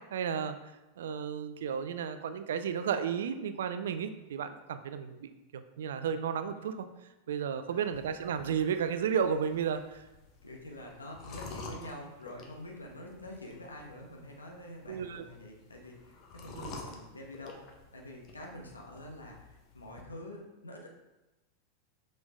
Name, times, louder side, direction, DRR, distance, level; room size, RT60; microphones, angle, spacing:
voice 1, 0.1-0.6 1.0-6.9 7.3-10.0 14.9-15.2 16.6-16.8, right 7 dB, 60° right, 10 dB, 0.5 m, -33 dB
sound 1, 7.9-20.0, left 4 dB, 40° left, 1.0 m, -50 dB
voice 2, 10.4-17.6 17.9-20.9, left 1 dB, 80° left, 0 dB, 1.2 m, -46 dB
6.1 x 5.3 x 3.6 m, 1.0 s
figure-of-eight pair, 90°, 0 cm